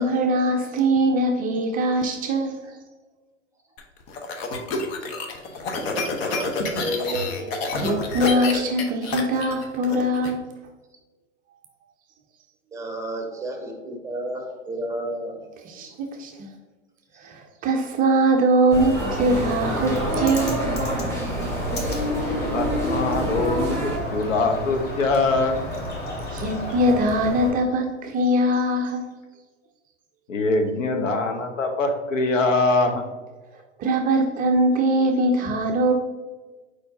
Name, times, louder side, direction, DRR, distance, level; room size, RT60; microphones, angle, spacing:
voice 1, 0.0-2.6 7.7-10.4 15.6-16.5 17.2-20.6 26.3-29.1 33.8-35.9, right 1 dB, 25° right, 2 dB, 0.4 m, -22 dB
sound 1, 3.8-10.3, left 3 dB, 50° left, 0.9 m, -28 dB
voice 2, 5.8-8.6 12.7-15.4 15.8-15.9, right 1 dB, 10° right, 2 dB, 0.8 m, -32 dB
sound 2, 18.7-24.0, right 1 dB, 5° left, 1.2 m, -27 dB
Bird, 19.3-27.5, left 1 dB, 25° left, 0.9 m, -32 dB
voice 3, 22.5-25.6 30.3-33.0, left 3 dB, 85° left, 5 dB, 0.9 m, -23 dB
4.5 x 4.3 x 2.6 m, 1.2 s
hypercardioid pair, 105°, 37 cm